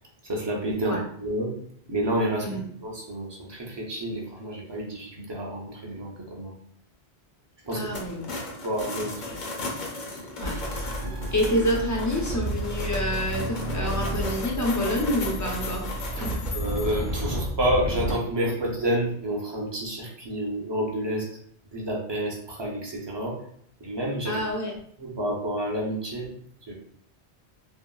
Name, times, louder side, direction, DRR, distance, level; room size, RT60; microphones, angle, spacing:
voice 1, 0.2-1.5 1.9-2.5 2.8-6.5 7.7-7.9 8.3-9.1 10.1-10.3 11.0-11.4 16.5-21.3 21.7-23.3 23.8-24.4 25.0-26.3 26.6-26.7, right 1 dB, 30° right, -1 dB, 0.5 m, -29 dB
sound 1, 7.6-16.9, left 2 dB, 55° left, 0.7 m, -36 dB
voice 2, 7.7-8.3 10.4-10.9 11.3-15.9 16.2-16.4 24.3-24.7, left 1 dB, 25° left, -1 dB, 0.4 m, -27 dB
sound 2, 10.4-18.1, right 1 dB, 80° right, 1.0 m, -32 dB
sound 3, 14.1-17.3, left 6 dB, 80° left, 1.1 m, -41 dB
2.9 x 2.8 x 2.3 m, 0.63 s
omnidirectional pair, 1.1 m